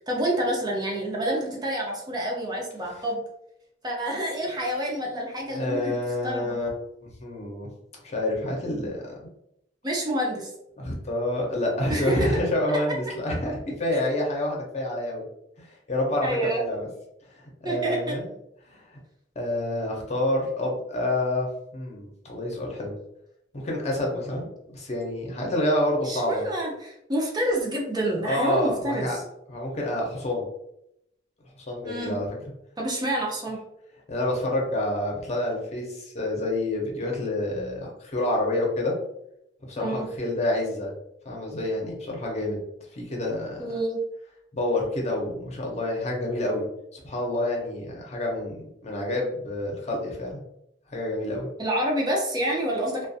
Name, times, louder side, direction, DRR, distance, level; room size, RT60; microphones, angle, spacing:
voice 1, 0.1-3.2 3.8-6.0 6.2-6.6 9.8-10.5 11.9-12.3 16.2-16.6 17.6-18.2 26.0-29.2 31.8-32.2 32.8-33.6 39.8-40.1 43.6-44.0 51.6-53.1, right 1 dB, 25° right, -1 dB, 0.5 m, -28 dB
voice 2, 5.5-6.7 7.0-7.7 8.0-9.3 10.8-15.2 15.6-16.9 17.3-18.3 18.7-19.0 19.4-21.5 21.7-22.9 23.5-26.4 28.2-29.2 29.5-30.5 31.7-32.3 34.1-38.9 39.7-40.9 41.2-42.6 42.9-43.6 44.5-46.6 46.9-50.4 50.9-51.5, left 1 dB, 40° left, -1 dB, 0.7 m, -28 dB
2.4 x 2.2 x 2.6 m, 0.79 s
head